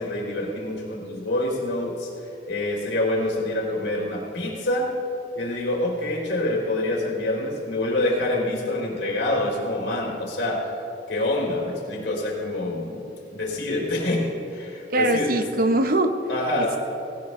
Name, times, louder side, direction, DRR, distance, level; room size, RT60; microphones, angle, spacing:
voice 1, 0.0-2.1 2.4-4.9 5.3-10.6 11.1-13.0 13.3-15.4 16.3-16.8, left 1 dB, 75° left, -1 dB, 3.4 m, -26 dB
voice 2, 14.9-16.1 16.6-16.8, right 1 dB, 50° right, 8 dB, 0.8 m, -22 dB
18.0 x 17.5 x 3.2 m, 2.7 s
head